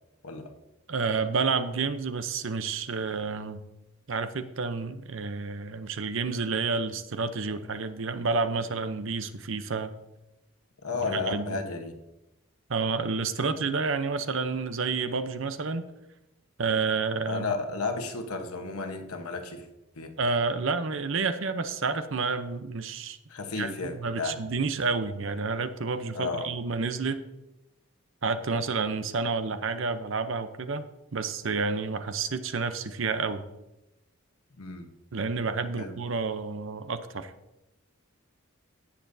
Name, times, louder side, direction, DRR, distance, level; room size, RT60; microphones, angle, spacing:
voice 1, 0.9-3.6 4.1-9.9 11.1-11.6 12.7-15.9 16.6-17.5 20.2-23.2 23.6-27.2 28.2-30.8 31.1-33.4 35.1-37.3, right 4 dB, 60° right, 11 dB, 0.7 m, -29 dB
voice 2, 10.8-12.0 17.2-19.7 19.9-20.1 23.3-24.4 26.1-26.5 34.6-34.9 35.7-36.0, left 3 dB, 90° left, 5 dB, 1.1 m, -33 dB
17.5 x 6.8 x 2.7 m, 0.94 s
head